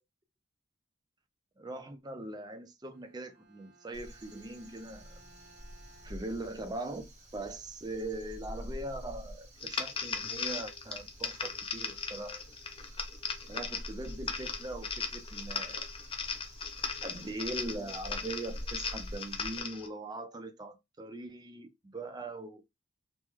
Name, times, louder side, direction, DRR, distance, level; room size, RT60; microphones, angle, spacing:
voice 1, 1.6-5.2 6.0-12.4 13.5-15.9 17.0-22.6, right 2 dB, 20° right, 0.5 m, -41 dB
Bowed string instrument, 2.8-6.9, right 2 dB, 60° right, 1.2 m, -61 dB
Crow, 3.9-19.6, equal, 35° right, 1.4 m, -47 dB
sound 1, 9.6-19.9, left 5 dB, 30° left, 0.5 m, -38 dB
3.1 x 2.1 x 3.5 m
head